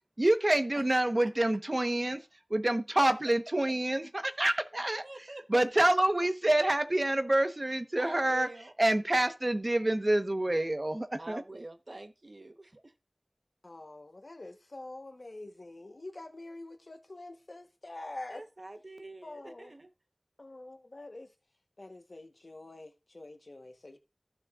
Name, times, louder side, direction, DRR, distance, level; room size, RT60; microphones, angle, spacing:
voice 1, 0.2-2.2 2.5-5.0 5.5-8.5 8.8-11.4, right 1 dB, 50° right, 1.0 m, -27 dB
voice 2, 5.0-5.4 8.0-8.7 11.2-12.9 18.3-19.9, right 2 dB, 75° right, 1.0 m, -46 dB
voice 3, 13.6-18.4 19.2-19.8 20.4-21.3 21.8-24.0, left 2 dB, 90° left, 1.1 m, -46 dB
15.0 x 6.3 x 2.4 m
wide cardioid pair, 45°, 0 cm